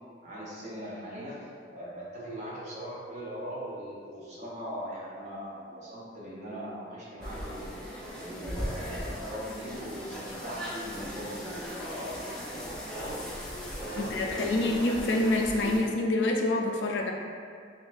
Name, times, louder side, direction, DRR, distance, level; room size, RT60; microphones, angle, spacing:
voice 1, 0.2-13.2 13.7-14.9 15.6-15.9, equal, 45° right, -7 dB, 0.8 m, -40 dB
sound 1, 7.2-15.8, equal, 5° left, 0.5 m, -38 dB
voice 2, 14.0-17.1, left 2 dB, 90° left, 2 dB, 0.4 m, -27 dB
3.9 x 2.5 x 2.5 m, 2.2 s
head